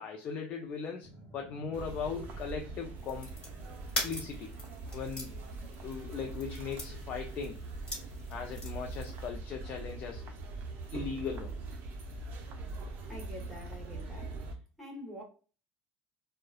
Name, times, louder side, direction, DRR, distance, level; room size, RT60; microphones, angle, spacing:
voice 1, 0.0-3.3 4.0-4.5 4.9-5.3 5.8-7.6 8.3-10.3 10.9-11.6, left 6 dB, 40° left, 0.4 m, -39 dB
sound 1, 1.0-9.2, right 1 dB, 20° right, 0.9 m, -58 dB
sound 2, 1.7-14.5, right 3 dB, 50° right, 0.5 m, -42 dB
sound 3, 3.0-9.3, left 1 dB, 20° left, 1.4 m, -43 dB
voice 2, 13.1-14.5 14.8-15.2, left 1 dB, 5° left, 0.8 m, -46 dB
2.7 x 2.1 x 2.2 m
cardioid pair, 135°, 5 cm